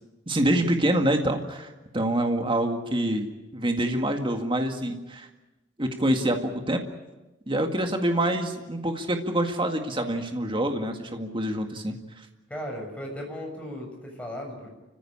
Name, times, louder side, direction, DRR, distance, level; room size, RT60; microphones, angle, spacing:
voice 1, 0.3-3.3 3.5-5.3 5.8-6.8 7.5-12.3, right 1 dB, 30° right, 4 dB, 2.0 m, -26 dB
voice 2, 12.5-14.7, equal, 5° left, 0 dB, 6.9 m, -36 dB
30.0 x 15.5 x 8.8 m, 1.1 s
head